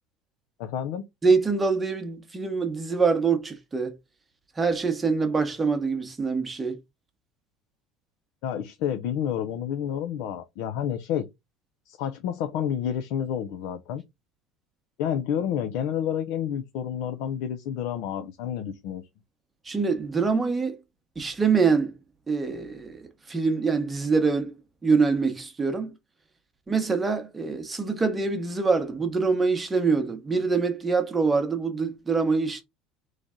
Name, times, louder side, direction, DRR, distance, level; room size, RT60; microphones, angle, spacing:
voice 1, 0.6-1.1 8.4-11.3 11.9-14.0 15.0-19.1, left 9 dB, 60° left, 0.6 m, -29 dB
voice 2, 1.2-3.9 4.6-6.8 19.6-20.8 21.2-22.0 22.3-24.5 24.8-25.9 26.7-32.6, right 4 dB, 10° right, 0.9 m, -24 dB
4.0 x 3.2 x 3.6 m
cardioid pair, 160°, 0 cm